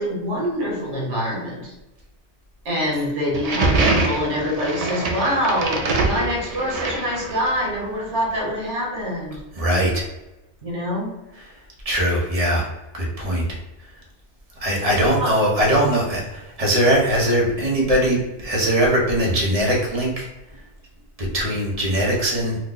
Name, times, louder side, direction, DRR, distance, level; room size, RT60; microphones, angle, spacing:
voice 1, 0.0-1.7 2.6-9.4 10.6-11.1 15.2-15.3, equal, 90° right, -3 dB, 1.5 m, -25 dB
sound 1, 3.3-7.7, right 3 dB, 60° right, 0.4 m, -24 dB
voice 2, 9.5-10.0 11.3-11.5 11.8-12.7 12.9-13.6 14.6-20.3 21.2-22.6, equal, 35° right, -3 dB, 0.8 m, -21 dB
2.8 x 2.1 x 3.7 m, 1.0 s
omnidirectional pair, 1.2 m